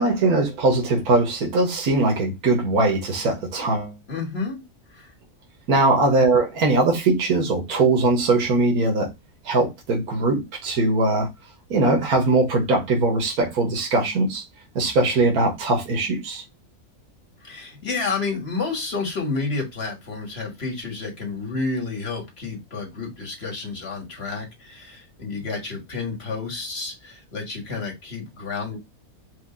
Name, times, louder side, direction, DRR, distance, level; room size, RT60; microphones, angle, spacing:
voice 1, 0.0-3.9 5.7-9.1 9.4-11.3 11.7-14.4 14.7-16.4, right 2 dB, 75° right, 1.8 m, -21 dB
voice 2, 4.1-4.6 4.9-5.1 17.4-28.8, left 4 dB, 40° left, 2.0 m, -30 dB
5.0 x 2.7 x 3.8 m
omnidirectional pair, 1.6 m